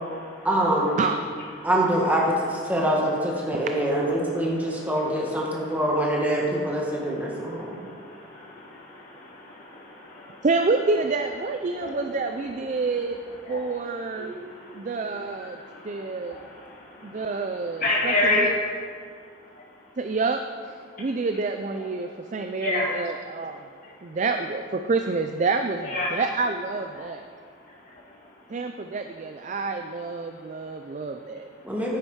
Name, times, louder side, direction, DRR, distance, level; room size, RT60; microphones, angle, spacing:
voice 1, 0.4-1.0 1.6-7.8 31.6-32.0, right 1 dB, 10° right, -3 dB, 1.5 m, -24 dB
voice 2, 7.5-10.5 11.8-11.9 13.5-13.6 14.2-15.1 15.6-17.3 17.8-18.5 22.6-22.9 25.8-26.1, left 2 dB, 45° left, -5 dB, 2.6 m, -30 dB
voice 3, 10.4-13.2 13.5-14.3 14.7-15.6 15.8-16.4 17.0-18.5 20.0-23.6 24.0-27.2 28.5-31.5, right 4 dB, 35° right, 6 dB, 0.4 m, -28 dB
9.6 x 9.6 x 4.8 m, 2.1 s
head